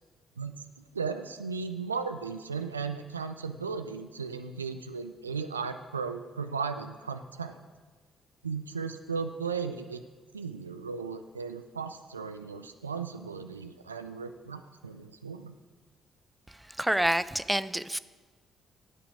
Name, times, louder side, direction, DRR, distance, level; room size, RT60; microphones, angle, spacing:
voice 1, 0.9-7.6 8.4-10.0 10.3-15.6, right 5 dB, 90° right, 8 dB, 0.4 m, -36 dB
voice 2, 16.8-18.0, right 1 dB, 5° right, 15 dB, 0.5 m, -27 dB
13.5 x 8.9 x 4.9 m, 1.4 s
figure-of-eight pair, 40°, 0 cm